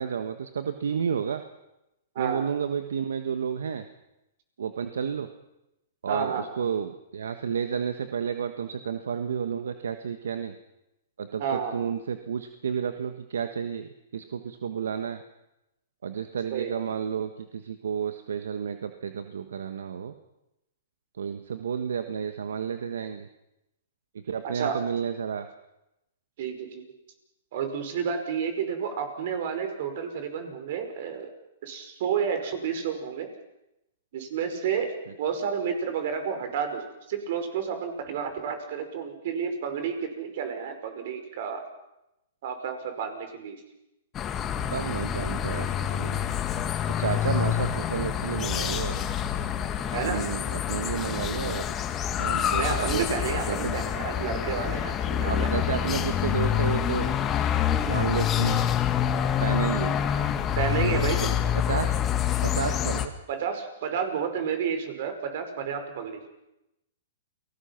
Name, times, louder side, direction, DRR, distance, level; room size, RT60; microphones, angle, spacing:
voice 1, 0.0-1.4 2.2-3.8 4.6-5.3 6.0-10.5 11.2-15.2 16.0-20.1 21.2-23.3 24.2-25.5 44.7-46.2 47.0-49.0 50.0-51.7 52.2-53.1 53.5-53.7 55.2-57.6 57.9-58.7 59.4-60.0 60.8-60.9 61.7-62.1 62.4-63.1, right 7 dB, 80° right, 8 dB, 1.4 m, -31 dB
voice 2, 6.1-6.4 11.4-11.7 16.5-16.7 24.5-24.8 26.4-26.8 27.5-31.3 31.6-33.3 34.1-34.9 35.2-41.6 42.4-43.6 49.9-50.3 52.6-55.5 60.6-61.3 63.3-66.3, right 7 dB, 60° right, 7 dB, 5.2 m, -30 dB
sound 1, 44.1-63.1, left 9 dB, 25° left, 2.0 m, -27 dB
29.5 x 19.5 x 6.0 m, 0.89 s
hypercardioid pair, 125°, 0 cm